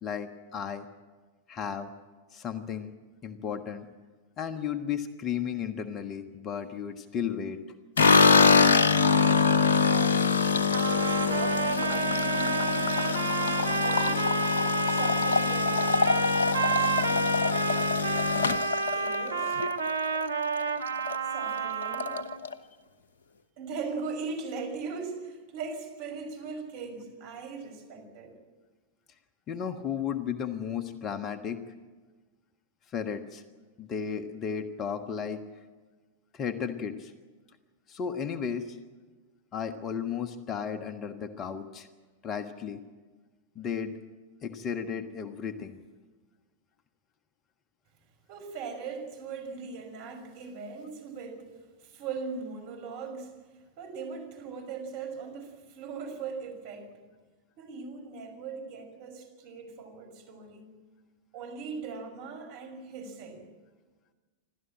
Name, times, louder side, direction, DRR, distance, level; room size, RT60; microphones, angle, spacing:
voice 1, 0.0-0.9 1.5-1.9 2.3-2.9 3.2-3.9 4.4-7.6 29.5-31.6 32.9-33.4 33.8-35.4 36.3-37.1 37.9-38.8 39.5-41.9 42.2-42.8 43.5-43.9 44.4-45.8, left 7 dB, 30° left, 10 dB, 1.3 m, -34 dB
sound 1, 8.0-20.2 20.5-21.2 21.4-21.5 21.8-22.5, left 5 dB, 70° left, 1.0 m, -24 dB
voice 2, 9.7-16.0 16.5-17.3 18.9-19.6 21.3-22.2 23.6-28.4 48.3-51.5 51.8-53.4 53.8-56.9 57.6-60.7 61.3-63.4, right 5 dB, 50° right, 3 dB, 5.7 m, -40 dB
sound 2, 10.7-22.4, right 4 dB, 80° right, 1.2 m, -30 dB
27.5 x 13.0 x 8.9 m, 1.3 s
figure-of-eight pair, 95°, 0 cm